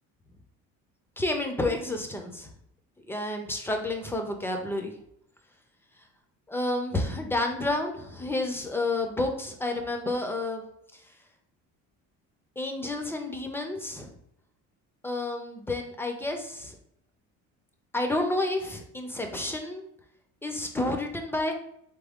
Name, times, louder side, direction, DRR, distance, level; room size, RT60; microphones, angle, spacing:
voice 1, 1.2-2.5 3.1-5.0 6.5-10.6 10.9-11.0 12.6-14.1 15.0-16.7 17.9-19.9 20.4-21.5, left 2 dB, 10° left, 4 dB, 0.3 m, -30 dB
3.5 x 3.5 x 3.5 m, 0.72 s
cardioid pair, 165°, 31 cm